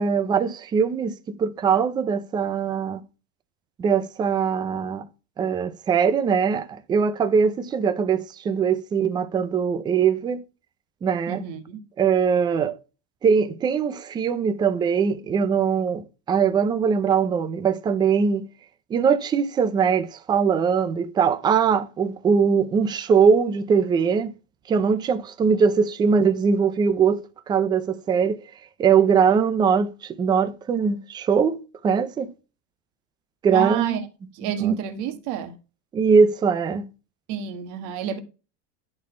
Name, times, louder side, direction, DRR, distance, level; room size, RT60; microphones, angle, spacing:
voice 1, 0.0-3.0 3.8-5.0 5.4-10.4 11.0-11.4 12.0-12.8 13.2-18.4 18.9-24.3 24.7-27.2 27.5-28.4 28.8-31.6 31.8-32.3 33.4-34.0 34.4-34.8 35.9-36.8, right 6 dB, 10° right, 0.4 m, -21 dB
voice 2, 11.3-11.8 33.5-34.0 34.3-35.6 37.3-38.2, right 9 dB, 50° right, 1.6 m, -29 dB
11.0 x 4.2 x 4.3 m
supercardioid pair, 165°, 37 cm